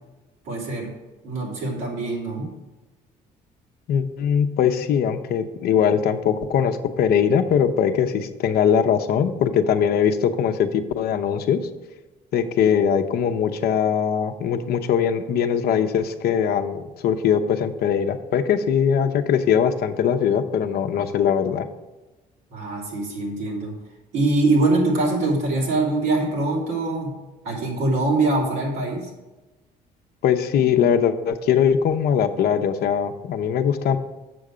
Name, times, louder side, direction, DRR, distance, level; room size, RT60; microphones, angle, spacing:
voice 1, 0.4-0.9 1.2-2.5 22.5-23.7 24.1-27.1 27.4-29.1, right 2 dB, 85° right, -2 dB, 3.1 m, -23 dB
voice 2, 3.9-11.6 12.3-21.7 30.2-34.0, left 8 dB, 65° left, 8 dB, 0.7 m, -21 dB
7.7 x 6.5 x 5.0 m, 1.1 s
cardioid pair, 110°, 17 cm